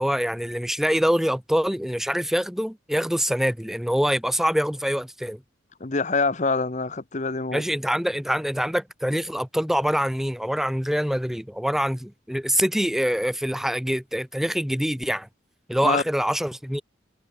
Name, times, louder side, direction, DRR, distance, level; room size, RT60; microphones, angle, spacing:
voice 1, 0.0-5.4 7.5-15.3 15.7-16.8, equal, ahead, 0.7 m, -25 dB
voice 2, 5.8-7.6 15.8-16.0, left 3 dB, 35° left, 0.9 m, -25 dB
head